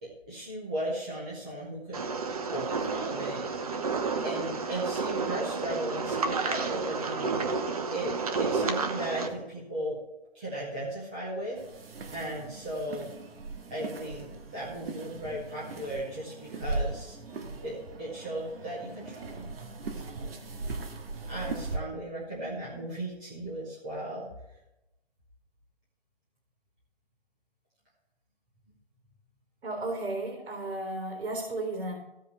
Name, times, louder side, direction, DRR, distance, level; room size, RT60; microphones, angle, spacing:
voice 1, 0.0-2.1 2.5-3.8 4.2-7.4 7.9-10.0 10.3-11.6 12.1-13.1 13.7-17.2 17.6-19.5 19.9-20.4 21.3-24.3, right 1 dB, 5° right, -7 dB, 0.6 m, -36 dB
sound 1, 1.9-9.3, right 4 dB, 35° right, 1.1 m, -31 dB
sound 2, 11.6-21.8, right 3 dB, 65° right, 1.9 m, -39 dB
voice 2, 29.6-32.0, right 2 dB, 85° right, 2 dB, 3.7 m, -34 dB
15.5 x 5.5 x 6.6 m, 0.91 s
hypercardioid pair, 170°, 31 cm